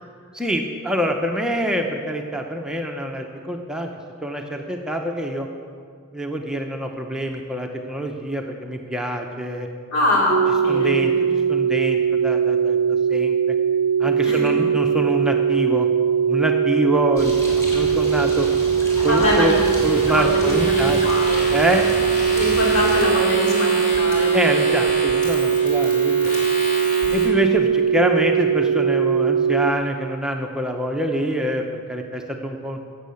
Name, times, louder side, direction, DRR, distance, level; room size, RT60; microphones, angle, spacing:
voice 1, 0.3-3.9 4.2-5.5 6.1-9.7 10.7-11.1 11.5-13.6 14.0-15.9 16.3-18.5 19.0-19.6 19.8-21.0 21.5-21.9 24.3-26.4 27.1-32.8, equal, 5° right, 2 dB, 0.8 m, -25 dB
voice 2, 9.9-11.3 14.2-14.5 19.1-19.6 20.1-21.8 22.3-24.3, left 1 dB, 75° left, -3 dB, 3.6 m, -24 dB
sound 1, 10.3-29.7, right 7 dB, 40° right, 0.5 m, -20 dB
Bird, 17.2-23.0, equal, 15° left, 3.6 m, -32 dB
sound 2, 19.5-27.3, left 1 dB, 40° left, 4.2 m, -30 dB
17.0 x 7.6 x 7.0 m, 2.2 s
head